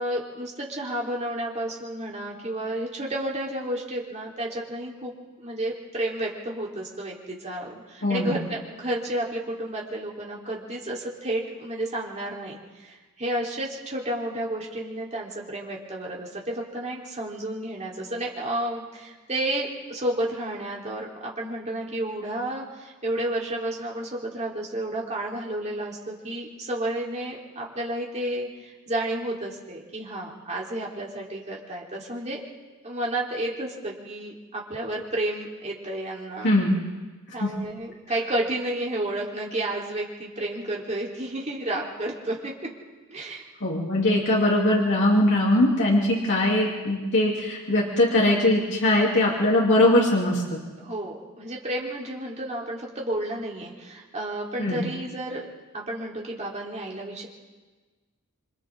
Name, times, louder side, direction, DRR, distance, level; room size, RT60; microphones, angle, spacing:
voice 1, 0.0-5.1 5.4-32.4 32.8-36.5 37.3-42.5 43.1-43.5 50.8-55.4 55.7-57.3, right 1 dB, 30° right, -3 dB, 3.8 m, -31 dB
voice 2, 8.0-8.4 36.4-36.8 37.4-37.5 43.6-50.6 54.6-54.8, left 1 dB, 55° left, -5 dB, 3.1 m, -21 dB
27.0 x 25.5 x 3.8 m, 1.3 s
head